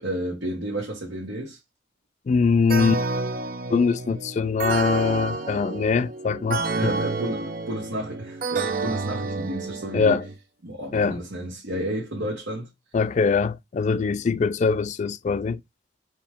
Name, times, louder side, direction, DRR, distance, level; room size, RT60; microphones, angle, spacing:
voice 1, 0.0-1.6 6.7-10.2 10.6-12.7, right 1 dB, 85° right, 1.5 m, -31 dB
voice 2, 2.3-3.0 3.7-6.9 9.9-10.2 10.9-11.2 12.9-15.6, left 5 dB, 40° left, 0.3 m, -22 dB
sound 1, 2.7-10.3, right 3 dB, 50° right, 0.6 m, -29 dB
4.4 x 3.1 x 3.4 m
head